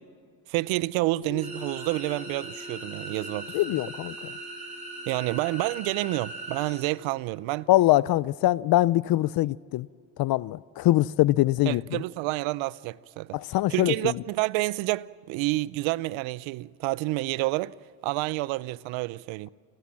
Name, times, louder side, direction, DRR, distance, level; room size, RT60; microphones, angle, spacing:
voice 1, 0.5-3.5 5.1-7.7 11.7-13.4 13.7-17.7 18.0-19.5, right 20 dB, 80° right, 0.6 m, -29 dB
sound 1, 1.2-13.1, left 2 dB, 75° left, 5.3 m, -49 dB
sound 2, 1.4-6.8, right 2 dB, 15° right, 7.0 m, -40 dB
voice 2, 3.5-4.3 7.7-9.9 10.2-12.0 13.3-14.1, left 16 dB, 55° left, 0.5 m, -23 dB
29.0 x 15.5 x 7.5 m
cardioid pair, 115°, 46 cm